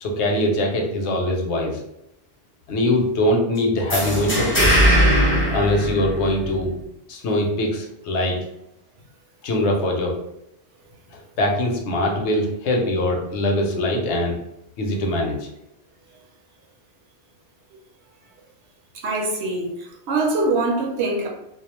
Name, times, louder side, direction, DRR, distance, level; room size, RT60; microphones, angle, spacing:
voice 1, 0.0-1.8 2.7-4.9 5.5-6.7 7.1-8.4 9.4-10.1 11.4-14.4 14.8-15.4, left 1 dB, 75° left, 0.9 m, -22 dB
sound 1, 3.9-6.6, equal, 20° left, 0.4 m, -19 dB
voice 2, 19.0-21.3, right 2 dB, 70° right, 0.9 m, -23 dB
2.3 x 2.1 x 2.9 m
omnidirectional pair, 1.2 m